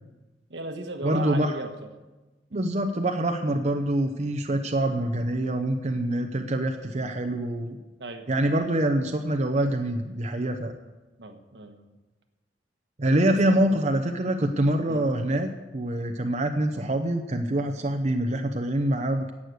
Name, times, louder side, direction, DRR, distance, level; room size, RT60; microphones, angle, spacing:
voice 1, 0.5-1.7 2.5-2.7 8.0-8.2 11.2-12.0 13.3-13.6 14.9-15.0, right 2 dB, 75° right, 5 dB, 1.4 m, -36 dB
voice 2, 1.0-1.5 2.5-7.8 8.3-10.8 13.0-19.3, right 1 dB, 40° right, 5 dB, 0.8 m, -25 dB
11.5 x 8.5 x 8.0 m, 1.1 s
head